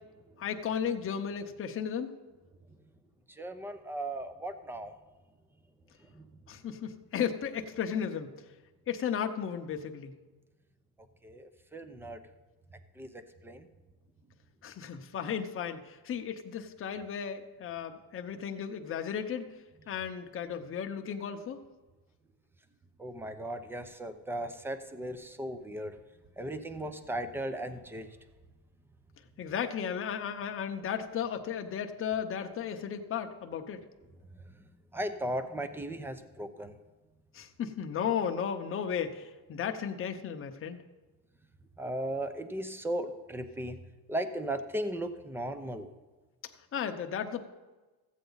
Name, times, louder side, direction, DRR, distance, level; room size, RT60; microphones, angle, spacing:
voice 1, 0.4-2.1 6.5-8.3 8.9-10.1 14.6-19.5 19.9-21.6 29.4-33.8 37.3-40.8 46.7-47.4, left 8 dB, 35° left, 5 dB, 0.9 m, -34 dB
voice 2, 3.3-4.9 6.1-6.2 11.2-12.2 13.0-13.1 13.4-13.6 23.0-25.9 26.4-28.1 34.9-36.7 41.8-43.7 44.1-45.9, right 1 dB, 5° right, 10 dB, 0.7 m, -36 dB
14.5 x 8.2 x 4.0 m, 1.2 s
cardioid pair, 120°, 38 cm